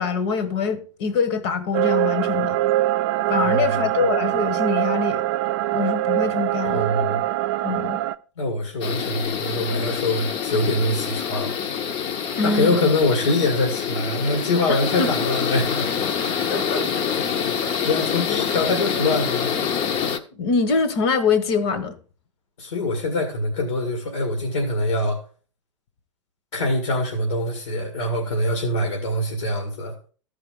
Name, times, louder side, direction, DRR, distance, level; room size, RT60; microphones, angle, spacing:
voice 1, 0.0-2.6 3.3-5.2 5.7-6.9 7.6-8.0 12.4-12.8 14.7-15.3 16.5-17.0 20.3-22.0, left 5 dB, 55° left, 1.4 m, -24 dB
sound 1, 1.7-8.1, right 15 dB, 55° right, 0.4 m, -23 dB
voice 2, 6.6-7.2 8.4-11.5 12.4-15.9 16.2-16.5 17.5-19.6 22.6-25.2 26.5-29.9, left 2 dB, 80° left, 2.2 m, -24 dB
sound 2, 8.8-20.2, left 7 dB, 35° left, 0.8 m, -26 dB
14.5 x 4.9 x 3.7 m
hypercardioid pair, 100°, 16 cm